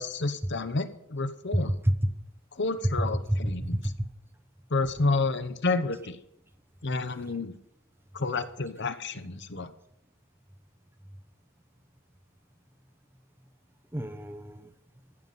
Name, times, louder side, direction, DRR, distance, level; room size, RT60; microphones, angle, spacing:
voice 1, 0.0-1.7 2.6-3.8 4.7-6.2 6.8-7.5 8.1-9.7, left 3 dB, 55° left, 11 dB, 1.0 m, -30 dB
voice 2, 1.5-2.1 3.0-4.1 13.9-14.7, equal, 10° right, 10 dB, 0.8 m, -28 dB
14.5 x 5.9 x 9.3 m, 0.76 s
head